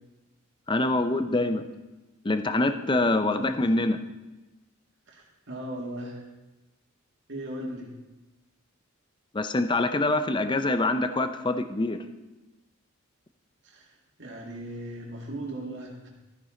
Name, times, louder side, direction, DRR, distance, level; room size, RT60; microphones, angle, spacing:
voice 1, 0.7-1.6 2.2-4.0 9.3-12.0, left 2 dB, 20° left, 9 dB, 0.5 m, -25 dB
voice 2, 3.3-3.8 5.1-6.2 7.3-7.9 13.6-16.1, right 1 dB, 55° right, -1 dB, 2.3 m, -38 dB
13.5 x 9.3 x 3.8 m, 1.1 s
head